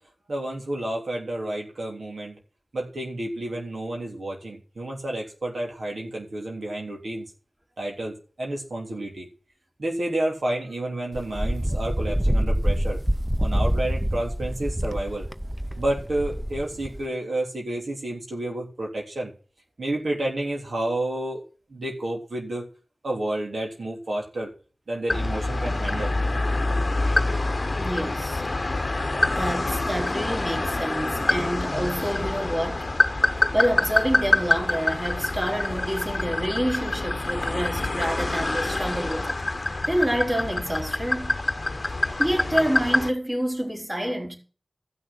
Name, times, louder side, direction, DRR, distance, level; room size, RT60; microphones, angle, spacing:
voice 1, 0.3-2.4 2.7-7.3 7.8-9.3 9.8-13.0 13.4-15.3 15.8-19.3 19.8-21.4 21.7-22.7 23.0-24.5 24.9-26.2, right 1 dB, 80° right, 3.3 m, -30 dB
Wind, 11.1-17.1, equal, 10° right, 0.7 m, -26 dB
sound 1, 25.1-43.1, left 2 dB, 45° left, 0.9 m, -26 dB
voice 2, 27.8-28.4 29.4-32.9 33.5-39.4 39.9-41.4 42.2-44.4, equal, 25° right, 3.9 m, -27 dB
15.0 x 6.3 x 6.0 m
wide cardioid pair, 60°, 0 cm